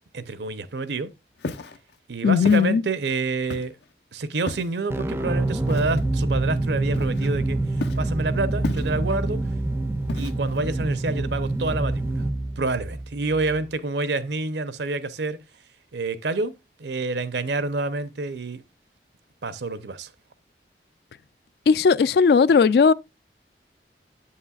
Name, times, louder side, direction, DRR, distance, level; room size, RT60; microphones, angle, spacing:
voice 1, 0.1-1.1 2.1-3.7 4.1-7.6 8.0-9.4 10.1-12.2 12.6-15.4 15.9-16.5 16.8-18.6 19.4-20.1, right 3 dB, 80° right, 0.7 m, -28 dB
Walk footsteps, 1.4-1.8 2.4-2.7 3.5-3.8 4.5-4.8 5.7-6.0 6.9-7.4 7.8-8.1 8.6-9.2 10.1-10.6, left 3 dB, 80° left, 0.7 m, -33 dB
voice 2, 2.2-2.8 21.7-22.9, left 5 dB, 65° left, 0.3 m, -17 dB
sound 1, 4.9-13.6, right 2 dB, 15° right, 0.4 m, -26 dB
8.5 x 7.6 x 2.4 m
head